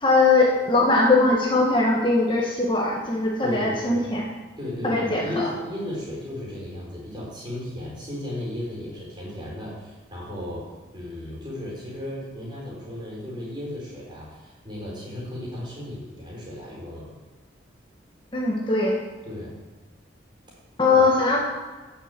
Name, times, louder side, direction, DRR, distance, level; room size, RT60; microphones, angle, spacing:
voice 1, 0.0-4.3 4.8-5.5 18.3-19.0 20.8-21.4, left 3 dB, 25° left, -2 dB, 1.6 m, -20 dB
voice 2, 3.4-4.1 4.6-10.6 10.9-17.1 19.2-19.6, left 1 dB, 25° right, -5 dB, 4.6 m, -35 dB
10.0 x 7.1 x 7.7 m, 1.3 s
head